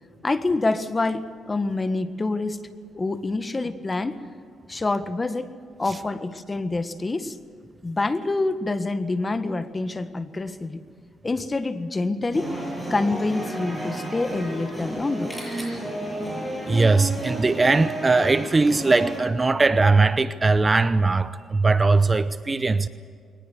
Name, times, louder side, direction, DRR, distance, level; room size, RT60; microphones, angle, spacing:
voice 1, 0.2-2.7 2.9-4.2 4.7-5.5 5.8-7.4 7.8-10.8 11.2-12.5 12.9-15.3, left 3 dB, 25° left, 1.5 m, -26 dB
sound 1, 12.3-19.2, right 1 dB, ahead, 7.8 m, -32 dB
voice 2, 16.7-22.9, right 3 dB, 25° right, 0.8 m, -20 dB
22.0 x 20.0 x 8.0 m
cardioid pair, 90°, 0 cm